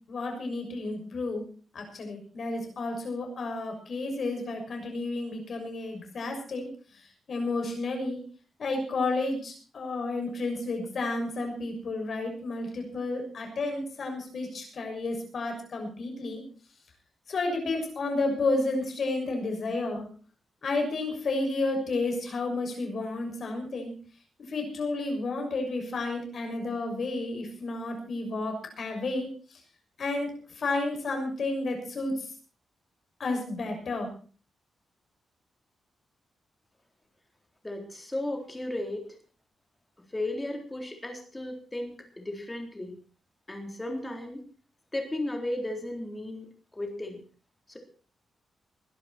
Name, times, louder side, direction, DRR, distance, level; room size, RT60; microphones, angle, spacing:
voice 1, 0.1-1.5 1.7-6.7 7.3-8.2 8.6-16.4 17.3-20.1 20.6-23.9 24.5-29.3 30.0-30.3 30.6-32.2 33.2-34.1, left 2 dB, 50° left, 3 dB, 6.7 m, -31 dB
voice 2, 37.6-39.1 40.1-42.9 43.5-44.4 44.9-46.5 46.7-47.2 47.7-47.8, left 1 dB, 15° left, 3 dB, 3.9 m, -34 dB
21.5 x 12.0 x 4.5 m, 0.38 s
wide cardioid pair, 145°, 0 cm